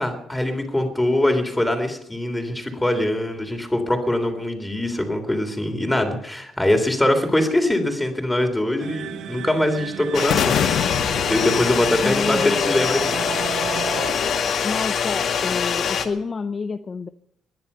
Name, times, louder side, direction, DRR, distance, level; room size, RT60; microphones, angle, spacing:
voice 1, 0.0-13.2, left 1 dB, 5° left, 5 dB, 3.4 m, -23 dB
sound 1, 8.8-14.1, right 10 dB, 80° right, 0.9 m, -34 dB
sound 2, 10.1-16.1, left 7 dB, 60° left, 1.9 m, -24 dB
sound 3, 10.3-12.4, left 10 dB, 75° left, 1.0 m, -26 dB
voice 2, 12.0-12.8 14.6-17.1, left 4 dB, 35° left, 9 dB, 0.6 m, -28 dB
21.5 x 10.5 x 5.6 m, 0.78 s
cardioid pair, 125°, 0 cm